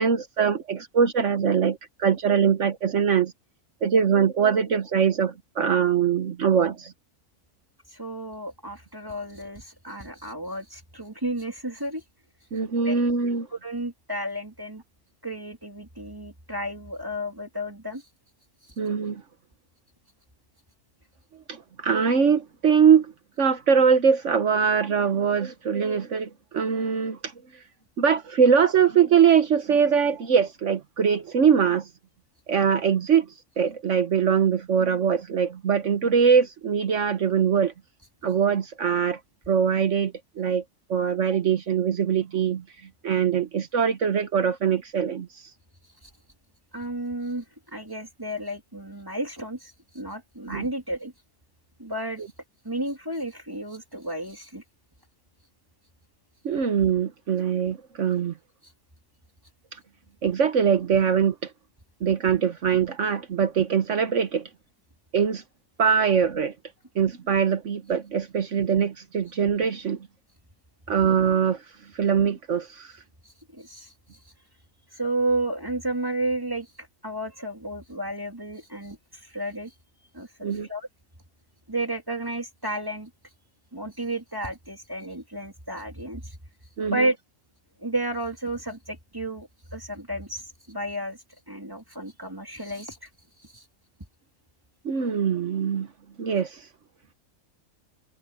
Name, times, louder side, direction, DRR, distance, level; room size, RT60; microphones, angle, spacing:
voice 1, 0.0-3.3 3.8-6.9 12.5-13.5 18.8-19.2 21.5-23.1 23.4-27.3 28.0-31.9 32.5-33.3 33.6-37.7 38.2-39.2 39.5-40.6 40.9-42.6 43.0-45.3 50.5-50.7 56.4-58.3 60.2-61.5 62.0-64.5 65.1-65.4 65.8-66.5 66.9-70.0 70.9-71.6 72.0-72.9 80.4-80.7 86.8-87.1 94.8-95.9 96.2-96.6, right 7 dB, 60° right, 1.3 m, -22 dB
voice 2, 7.9-12.0 12.9-13.0 13.5-14.8 15.2-18.0 46.0-46.1 46.7-51.1 51.8-52.2 52.6-54.6 73.5-73.9 74.9-79.7 80.1-80.9 81.7-83.1 83.7-86.4 86.9-87.2 87.8-91.2 91.5-93.1 93.4-93.6, right 1 dB, 15° right, 2.3 m, -32 dB
omnidirectional pair, 1.5 m